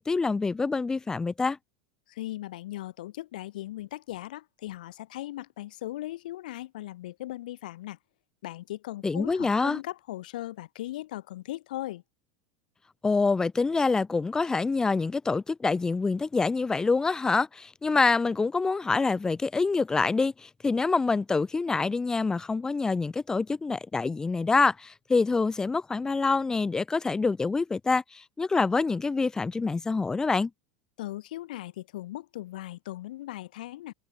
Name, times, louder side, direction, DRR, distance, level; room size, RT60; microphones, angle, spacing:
voice 1, 0.0-1.6 9.0-9.8 13.0-30.5, left 4 dB, 15° left, 4.3 m, -26 dB
voice 2, 2.1-8.0 8.4-12.0 31.0-33.9, left 15 dB, 80° left, 3.7 m, -38 dB
supercardioid pair, 115°, 4 cm